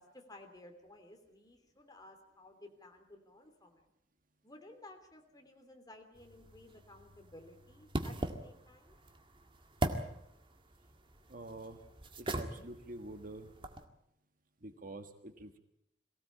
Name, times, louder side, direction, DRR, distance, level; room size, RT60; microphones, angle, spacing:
voice 1, 0.0-3.9 4.4-9.0, left 2 dB, 20° left, 4 dB, 3.1 m, -56 dB
sound 1, 6.2-13.9, right 1 dB, 30° right, 1.9 m, -41 dB
voice 2, 11.3-11.8 12.1-13.5 14.6-15.6, right 2 dB, 50° right, 7 dB, 1.7 m, -47 dB
23.0 x 17.0 x 8.7 m, 0.76 s
head